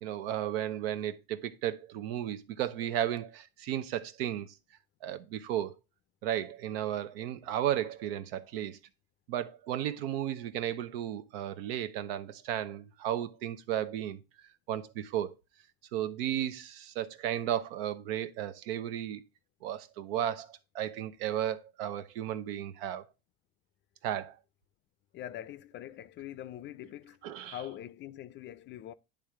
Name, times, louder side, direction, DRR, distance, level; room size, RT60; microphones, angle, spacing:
voice 1, 0.0-4.5 5.0-5.8 6.2-8.8 9.3-14.2 14.7-15.3 15.9-19.2 19.6-23.0 24.0-24.3 27.2-27.6, right 11 dB, 85° right, 0.8 m, -34 dB
voice 2, 25.1-27.2 27.5-28.9, left 12 dB, 40° left, 0.4 m, -43 dB
10.0 x 3.5 x 3.6 m
supercardioid pair, 110°, 29 cm